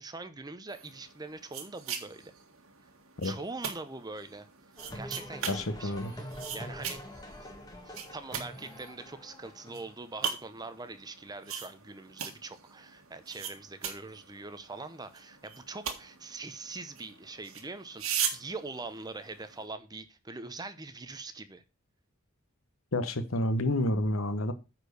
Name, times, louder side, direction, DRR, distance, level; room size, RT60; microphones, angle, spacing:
voice 1, 0.0-2.3 3.2-4.5 4.9-7.0 7.9-21.6, right 3 dB, 20° right, 0.7 m, -43 dB
sound 1, 0.7-19.7, right 7 dB, 80° right, 1.7 m, -41 dB
sound 2, 4.8-9.9, equal, 20° left, 1.7 m, -45 dB
voice 2, 5.5-6.1 22.9-24.5, left 1 dB, 70° left, 1.1 m, -29 dB
9.7 x 4.5 x 6.7 m
head